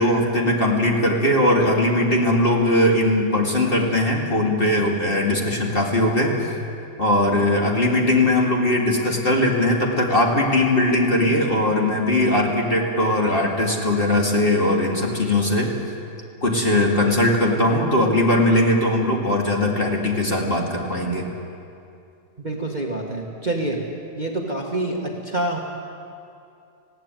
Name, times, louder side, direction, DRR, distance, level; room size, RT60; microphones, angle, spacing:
voice 1, 0.0-6.4 7.0-15.7 16.4-21.3, left 1 dB, 30° left, -1 dB, 2.5 m, -20 dB
voice 2, 22.4-23.8 24.1-25.6, right 1 dB, 25° right, 0 dB, 1.5 m, -26 dB
20.5 x 16.0 x 9.1 m, 2.6 s
omnidirectional pair, 1.9 m